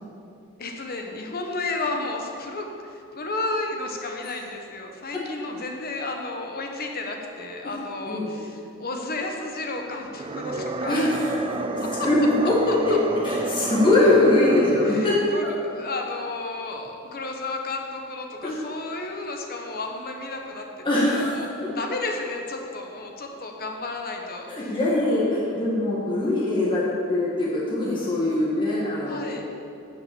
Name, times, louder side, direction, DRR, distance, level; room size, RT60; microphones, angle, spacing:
voice 1, 0.6-11.0 11.8-11.9 14.9-21.5 21.7-24.8 29.0-29.4, left 2 dB, 45° left, 2 dB, 1.1 m, -32 dB
sound 1, 10.0-15.3, right 2 dB, 25° right, 0.4 m, -30 dB
voice 2, 10.8-13.0 13.2-15.2 18.4-18.5 20.8-21.7 24.5-29.4, left 2 dB, 20° left, -7 dB, 1.7 m, -22 dB
9.6 x 5.9 x 7.0 m, 2.5 s
head